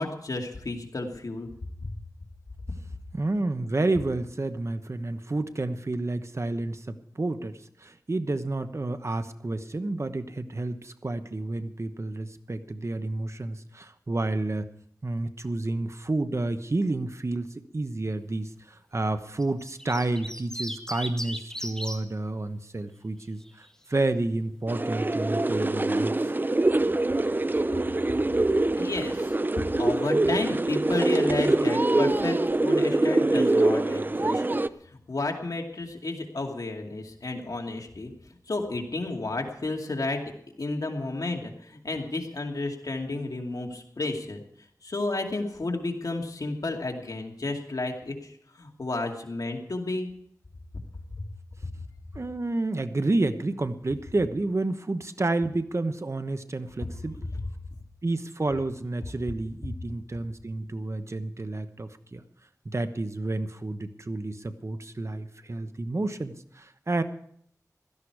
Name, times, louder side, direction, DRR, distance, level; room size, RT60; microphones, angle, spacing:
voice 1, 0.0-1.5 1.8-1.9 28.1-28.2 28.7-29.4 29.8-34.4 34.9-38.1 38.5-40.2 40.6-44.4 44.8-50.1 51.1-51.3 57.3-57.4, left 2 dB, 70° left, 2 dB, 2.4 m, -32 dB
voice 2, 3.1-14.7 15.0-26.3 52.1-57.2 58.0-62.2 62.6-67.0, right 2 dB, 45° right, 10 dB, 1.0 m, -30 dB
sound 1, 19.4-22.0 23.2-23.7, equal, 10° left, 2.0 m, -36 dB
sound 2, 24.7-34.7, right 2 dB, 30° right, 0.6 m, -24 dB
16.5 x 13.5 x 4.8 m, 0.66 s
wide cardioid pair, 55°, 6 cm